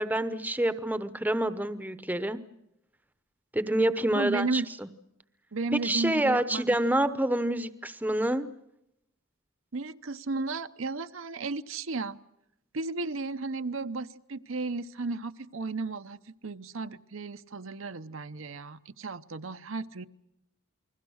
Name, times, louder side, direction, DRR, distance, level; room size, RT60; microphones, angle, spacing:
voice 1, 0.0-2.4 3.5-4.6 5.8-8.5, right 1 dB, 10° right, 12 dB, 0.9 m, -27 dB
voice 2, 4.1-4.7 5.5-6.6 9.7-12.2 12.7-20.1, right 3 dB, 65° right, 10 dB, 0.8 m, -34 dB
29.0 x 21.0 x 6.4 m, 0.83 s
head